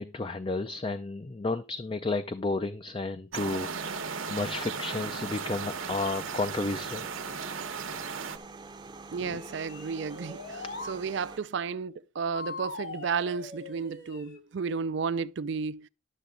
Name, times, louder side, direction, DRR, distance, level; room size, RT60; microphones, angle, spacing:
voice 1, 0.0-7.1 9.3-9.4, left 3 dB, 25° left, 0.4 m, -32 dB
sound 1, 3.3-11.4, right 3 dB, 20° right, 0.7 m, -46 dB
sound 2, 3.3-8.4, right 6 dB, 90° right, 1.1 m, -36 dB
voice 2, 9.1-15.9, right 5 dB, 60° right, 0.4 m, -33 dB
sound 3, 9.2-11.0 12.3-14.4, left 3 dB, 60° left, 2.2 m, -41 dB
11.5 x 6.9 x 3.7 m
head